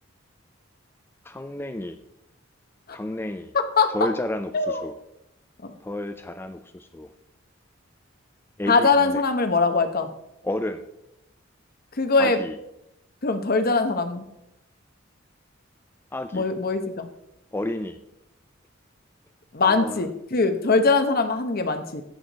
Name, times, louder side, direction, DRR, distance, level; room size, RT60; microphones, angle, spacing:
voice 1, 1.3-2.0 2.9-3.5 3.9-4.9 5.8-7.1 8.6-9.1 10.4-10.8 12.2-12.5 16.1-16.5 17.5-18.0 19.6-20.0, left 1 dB, 10° left, 9 dB, 0.4 m, -31 dB
voice 2, 3.5-4.1 4.5-4.9 5.6-5.7 8.7-10.1 12.0-12.4 13.2-14.2 16.3-17.1 19.5-22.0, left 4 dB, 45° left, 8 dB, 0.9 m, -22 dB
14.5 x 6.4 x 4.1 m, 0.85 s
head